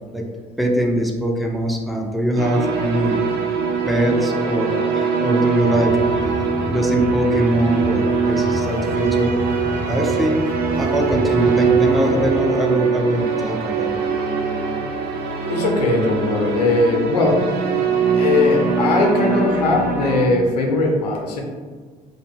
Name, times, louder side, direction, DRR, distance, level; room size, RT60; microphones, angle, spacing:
voice 1, 0.6-3.2 3.9-5.9 6.2-9.3 9.8-10.5 10.8-14.0, equal, ahead, 1 dB, 0.5 m, -22 dB
sound 1, 2.4-20.2, right 5 dB, 55° right, 0.5 m, -22 dB
sound 2, 5.6-12.4, equal, 20° right, 1.1 m, -31 dB
voice 2, 15.5-17.5 18.1-21.4, left 2 dB, 90° left, 0 dB, 0.4 m, -19 dB
2.6 x 2.1 x 2.9 m, 1.5 s
hypercardioid pair, 55°, 20 cm